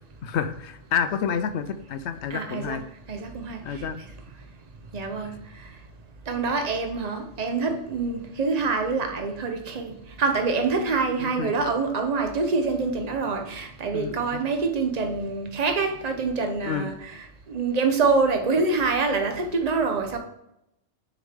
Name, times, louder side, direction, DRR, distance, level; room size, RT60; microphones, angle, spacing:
voice 1, 0.2-2.8 3.6-4.0 11.2-11.7 13.9-14.4 16.6-16.9, left 7 dB, 70° left, 10 dB, 0.9 m, -29 dB
voice 2, 2.3-2.8 3.1-3.9 4.9-5.3 5.6-5.7 6.3-17.2 17.5-20.2, right 4 dB, 35° right, 5 dB, 1.0 m, -26 dB
6.5 x 4.9 x 3.5 m, 0.80 s
omnidirectional pair, 1.3 m